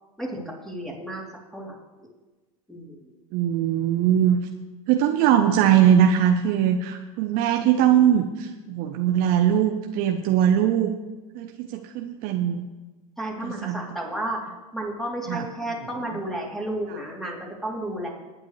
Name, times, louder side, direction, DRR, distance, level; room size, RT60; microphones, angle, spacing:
voice 1, 0.2-1.2 1.5-2.1 2.7-3.1 13.2-18.1, right 1 dB, ahead, -3 dB, 3.5 m, -32 dB
voice 2, 3.3-4.4 4.9-10.9 11.3-12.7 13.4-13.8 15.3-15.4, right 9 dB, 55° right, 5 dB, 0.9 m, -21 dB
19.5 x 9.5 x 3.3 m, 1.2 s
hypercardioid pair, 100°, 18 cm